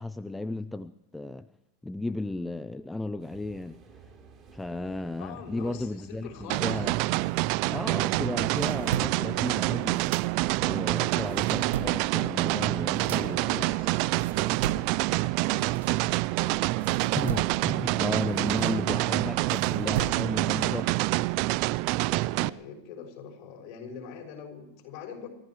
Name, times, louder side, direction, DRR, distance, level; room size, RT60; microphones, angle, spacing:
voice 1, 0.0-1.5 1.8-3.8 4.5-7.0 7.6-10.1 10.6-13.8 17.1-21.0, left 2 dB, 5° left, 13 dB, 0.6 m, -34 dB
sound 1, 3.2-18.0, right 4 dB, 35° right, 3.5 m, -56 dB
voice 2, 5.2-6.9 13.0-15.8 16.4-17.2 17.8-17.9 21.8-25.3, left 6 dB, 55° left, 2 dB, 6.3 m, -44 dB
sound 2, 6.5-22.5, right 20 dB, 55° right, 0.5 m, -27 dB
sound 3, 8.2-10.8 11.1-16.4 16.8-20.5, right 9 dB, 80° right, 1.1 m, -38 dB
29.0 x 14.5 x 3.1 m, 0.85 s
hypercardioid pair, 105°, 0 cm